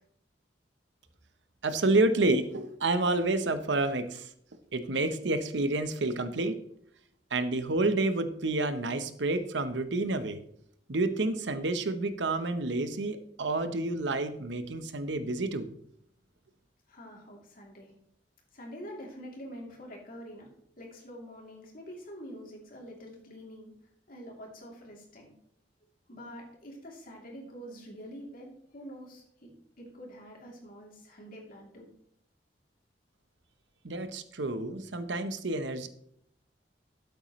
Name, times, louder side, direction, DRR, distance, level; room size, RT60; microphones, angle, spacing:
voice 1, 1.6-4.3 4.7-6.6 7.3-10.4 10.9-15.7 33.8-35.9, right 2 dB, 85° right, 10 dB, 0.9 m, -29 dB
voice 2, 16.9-17.9 18.5-20.5 20.8-23.7 24.1-25.3 26.1-29.5 29.8-31.9, equal, 55° left, -1 dB, 2.9 m, -46 dB
12.0 x 8.3 x 3.1 m, 0.70 s
head